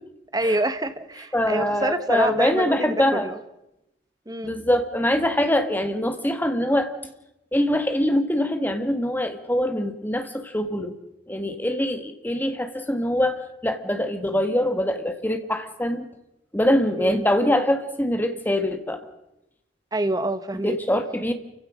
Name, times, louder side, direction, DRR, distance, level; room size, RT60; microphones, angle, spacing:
voice 1, 0.3-3.4 4.3-4.6 17.0-17.3 19.9-20.8, right 1 dB, 20° right, 11 dB, 1.1 m, -26 dB
voice 2, 1.3-3.3 4.4-6.9 7.5-10.9 11.3-16.1 16.5-19.0 20.6-21.3, left 1 dB, 10° left, 7 dB, 1.7 m, -23 dB
28.5 x 16.0 x 6.3 m, 0.90 s
head